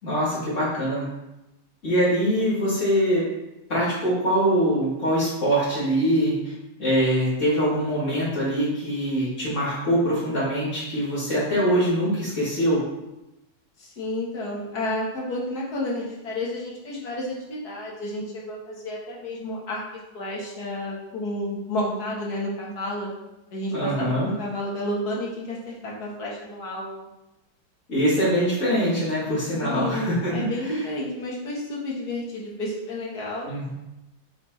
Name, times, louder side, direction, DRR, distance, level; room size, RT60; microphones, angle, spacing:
voice 1, 0.0-1.1 1.8-3.3 3.7-6.5 6.8-12.8 23.7-24.3 27.9-30.8 33.5-33.7, equal, 40° left, -8 dB, 3.3 m, -23 dB
voice 2, 13.8-19.8 20.1-23.1 23.5-27.1 29.6-33.5, left 1 dB, 60° left, -4 dB, 2.3 m, -31 dB
7.2 x 5.0 x 4.3 m, 0.94 s
omnidirectional pair, 2.0 m